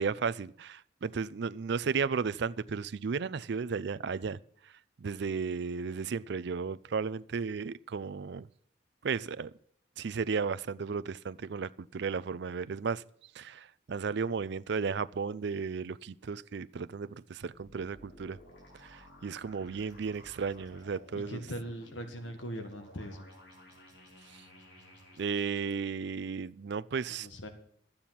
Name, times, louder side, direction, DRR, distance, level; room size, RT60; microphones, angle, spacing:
voice 1, 0.0-4.4 5.0-8.5 9.0-9.5 10.0-13.0 13.4-18.4 18.8-21.4 25.2-27.3, right 5 dB, 60° right, 0.4 m, -34 dB
sound 1, 17.5-25.6, equal, 65° left, 3.8 m, -55 dB
voice 2, 21.1-23.3 27.2-27.5, equal, 85° left, 1.7 m, -40 dB
13.0 x 8.8 x 5.9 m
head